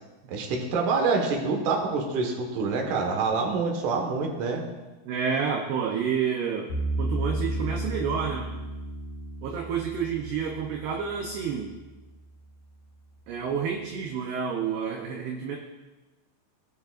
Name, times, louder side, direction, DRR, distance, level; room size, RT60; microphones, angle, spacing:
voice 1, 0.3-4.6, right 4 dB, 65° right, 1 dB, 2.1 m, -26 dB
voice 2, 4.6-8.6 9.4-11.7 13.3-15.6, right 6 dB, 85° right, 1 dB, 2.3 m, -30 dB
sound 1, 6.7-11.8, right 1 dB, 55° left, 2.6 m, -33 dB
20.0 x 8.1 x 2.5 m, 1.1 s
omnidirectional pair, 5.8 m